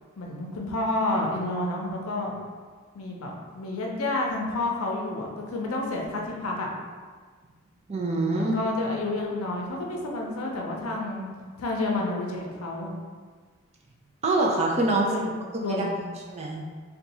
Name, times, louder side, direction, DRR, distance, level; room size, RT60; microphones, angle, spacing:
voice 1, 0.2-2.3 2.9-6.7 8.3-11.3 11.6-12.9 15.0-15.3 15.6-16.0, left 2 dB, 75° left, -1 dB, 0.6 m, -30 dB
voice 2, 7.9-8.5 14.2-15.1 15.5-15.8 16.3-16.6, right 2 dB, 30° right, -1 dB, 0.4 m, -25 dB
2.7 x 2.3 x 4.1 m, 1.6 s
head